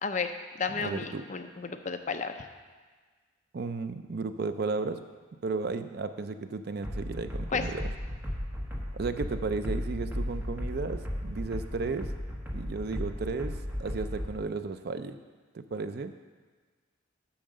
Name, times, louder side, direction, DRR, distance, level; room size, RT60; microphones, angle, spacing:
voice 1, 0.0-2.4 7.5-7.6, left 5 dB, 40° left, 7 dB, 0.5 m, -33 dB
voice 2, 0.7-1.2 3.5-5.0 5.4-7.9 8.9-12.1 12.5-15.2 15.5-16.1, right 4 dB, 50° right, 9 dB, 0.5 m, -34 dB
sound 1, 6.8-14.3, equal, 10° right, 1.0 m, -35 dB
8.8 x 5.8 x 6.4 m, 1.5 s
head